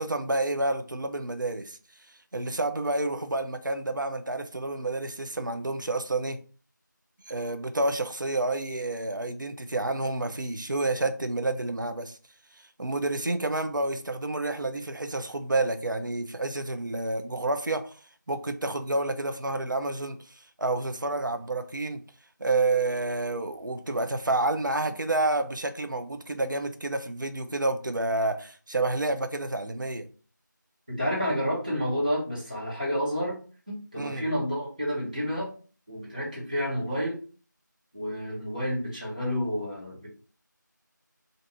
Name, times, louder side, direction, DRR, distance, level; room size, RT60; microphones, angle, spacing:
voice 1, 0.0-1.8 2.3-6.4 7.3-12.2 12.8-17.9 18.3-22.0 22.4-30.1 34.0-34.2, right 2 dB, 75° right, 0.5 m, -29 dB
voice 2, 30.9-35.5 35.9-37.2 37.9-40.1, equal, 25° right, 1.1 m, -30 dB
2.6 x 2.6 x 3.4 m
figure-of-eight pair, 175°, 11 cm